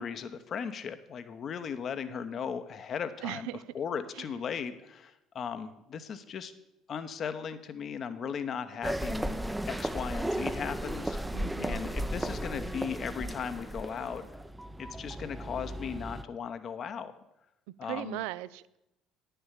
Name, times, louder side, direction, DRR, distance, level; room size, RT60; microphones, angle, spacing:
voice 1, 0.0-3.5 3.7-6.5 6.9-11.2 11.6-14.3 14.8-17.1 17.8-18.2, left 7 dB, 50° left, 10 dB, 0.9 m, -37 dB
voice 2, 3.2-3.6 4.2-4.3 11.3-11.9 17.8-18.8, right 16 dB, 75° right, 17 dB, 0.4 m, -38 dB
sound 1, 8.8-16.2, right 1 dB, 10° right, 0.6 m, -35 dB
9.8 x 6.8 x 7.4 m, 0.88 s
hypercardioid pair, 60°, 0 cm